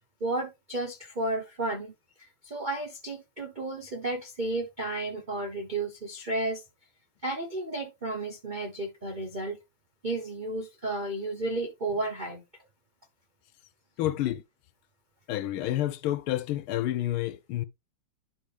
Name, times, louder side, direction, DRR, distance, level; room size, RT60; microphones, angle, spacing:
voice 1, 0.2-1.9 2.2-6.6 7.2-9.6 10.0-12.4, right 2 dB, 50° right, 0.5 m, -32 dB
voice 2, 14.0-14.4 15.3-17.6, left 13 dB, 75° left, 1.4 m, -29 dB
11.0 x 4.2 x 3.3 m
omnidirectional pair, 2.4 m